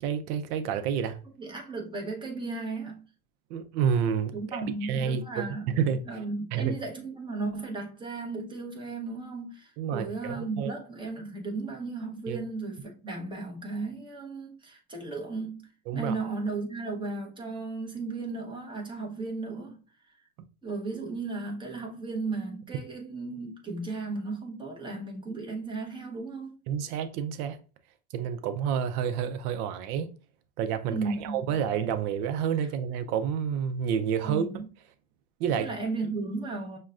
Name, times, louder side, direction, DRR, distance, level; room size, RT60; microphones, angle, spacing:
voice 1, 0.0-1.2 3.5-6.0 6.5-6.8 9.8-10.7 12.3-12.4 15.9-16.1 26.7-27.6 28.1-30.1 30.6-34.5 35.4-35.7, right 8 dB, 75° right, 0.6 m, -29 dB
voice 2, 1.4-3.0 4.3-5.7 6.1-19.8 20.6-26.6 30.9-31.4 32.6-32.7 34.2-34.7 35.6-36.8, right 3 dB, 10° right, 0.9 m, -35 dB
6.1 x 2.2 x 2.4 m
supercardioid pair, 120°, 45 cm